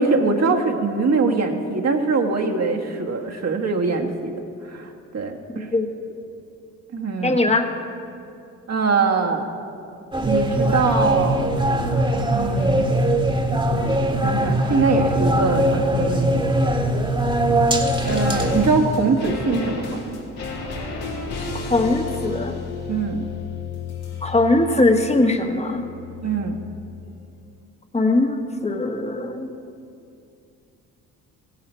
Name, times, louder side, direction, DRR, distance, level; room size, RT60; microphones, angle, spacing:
voice 1, 0.0-4.3 4.6-5.7 6.9-7.5 8.7-9.5 10.2-11.5 12.3-12.8 14.2-16.4 18.0-20.1 22.9-23.3 26.2-26.5, right 4 dB, 45° right, 2 dB, 1.6 m, -22 dB
voice 2, 5.5-5.9 7.2-7.7 21.7-22.6 24.2-25.9 27.9-29.5, left 2 dB, 15° left, 5 dB, 1.4 m, -20 dB
sound 1, 10.1-18.7, right 1 dB, 15° right, 1.6 m, -21 dB
sound 2, 17.7-27.1 27.4-27.5, left 4 dB, 75° left, 2.6 m, -33 dB
16.0 x 11.5 x 4.5 m, 2.5 s
supercardioid pair, 60°, 37 cm